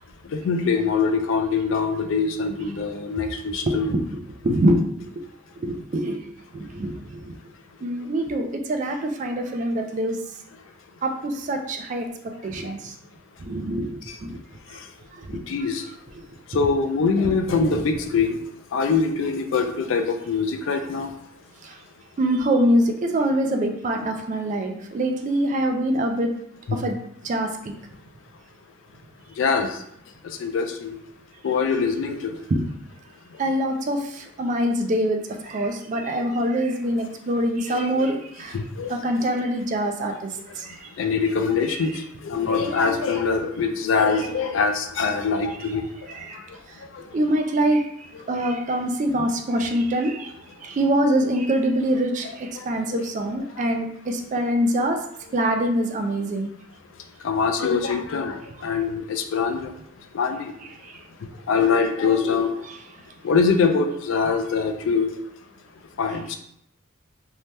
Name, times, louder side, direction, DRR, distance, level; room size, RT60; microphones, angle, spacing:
voice 1, 0.3-3.9 12.6-12.7 14.1-14.2 15.5-15.8 16.5-18.4 18.7-21.1 26.7-26.8 29.4-29.7 30.4-31.0 31.4-32.3 37.7-38.1 38.5-39.0 41.0-41.9 42.2-45.8 46.9-47.0 52.6-52.7 52.9-53.0 57.2-59.7 60.1-60.5 61.5-62.5 63.2-65.1 66.0-66.4, left 5 dB, 70° left, 0.3 m, -23 dB
voice 2, 3.7-5.3 5.6-7.3 7.8-10.2 11.0-13.0 13.4-14.4 15.3-15.4 16.2-16.3 17.2-17.8 21.6-21.8 22.2-26.3 26.7-27.0 27.2-27.7 32.5-32.6 33.4-38.6 38.9-40.3 40.6-40.9 41.7-41.8 46.1-46.4 47.1-47.9 48.3-50.3 50.6-55.0 55.3-56.5 60.8-61.0, right 1 dB, 35° right, 0.3 m, -24 dB
2.7 x 2.1 x 3.2 m
head